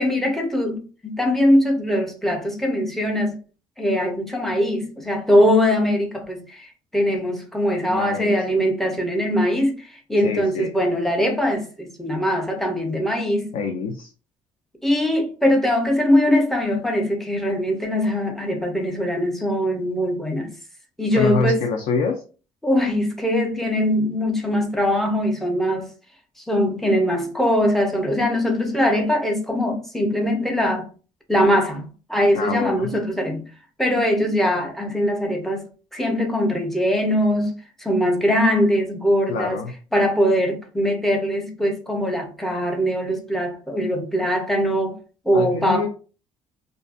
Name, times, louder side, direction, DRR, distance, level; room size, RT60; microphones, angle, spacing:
voice 1, 0.0-3.4 3.8-6.7 6.9-13.5 14.8-20.5 21.0-21.7 22.6-25.9 26.5-30.9 31.3-33.5 33.8-35.6 35.9-39.6 39.9-45.0 45.3-45.9, equal, 5° left, 0.5 m, -21 dB
voice 2, 7.8-8.3 10.2-10.7 13.5-14.1 21.1-22.2 32.3-32.9 39.3-39.7 45.3-45.9, left 4 dB, 75° left, 0.5 m, -25 dB
2.5 x 2.3 x 2.4 m
cardioid pair, 145°, 12 cm